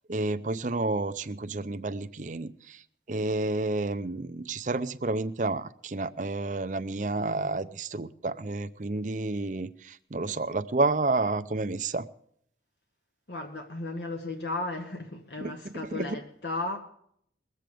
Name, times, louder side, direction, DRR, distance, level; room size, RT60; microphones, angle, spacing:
voice 1, 0.1-2.8 3.1-12.1 15.4-15.5 15.9-16.1, right 3 dB, 45° right, 0.6 m, -30 dB
voice 2, 13.3-16.8, left 2 dB, 70° left, 1.3 m, -35 dB
21.5 x 7.7 x 5.1 m
head